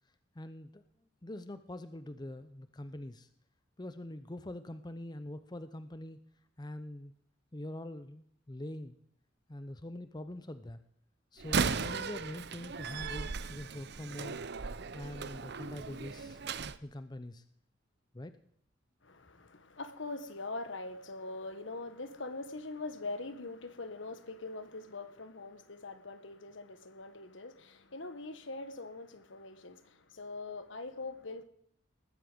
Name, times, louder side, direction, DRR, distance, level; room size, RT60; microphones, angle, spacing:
voice 1, 0.3-0.8 1.2-3.3 3.8-6.2 6.6-7.1 7.5-9.0 9.5-10.8 11.3-14.4 14.9-16.4 16.8-17.4 18.1-18.3, left 1 dB, 20° left, 11 dB, 0.7 m, -44 dB
Slam, 11.4-16.8, right 5 dB, 55° right, 0.7 m, -36 dB
voice 2, 19.0-31.4, left 3 dB, 70° left, 10 dB, 1.5 m, -43 dB
19.5 x 8.7 x 7.9 m, 0.66 s
head